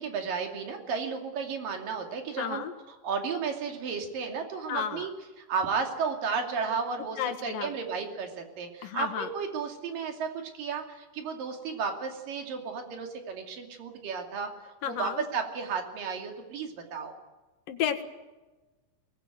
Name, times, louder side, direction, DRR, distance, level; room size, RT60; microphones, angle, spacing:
voice 1, 0.0-5.1 5.5-10.3 10.5-17.1, right 5 dB, 80° right, 3 dB, 4.3 m, -33 dB
voice 2, 2.4-2.7 4.7-5.1 7.2-7.7 8.8-9.3 14.8-15.3 17.7-18.0, left 9 dB, 90° left, 8 dB, 3.4 m, -32 dB
23.0 x 19.5 x 9.2 m, 1.2 s
omnidirectional pair, 3.9 m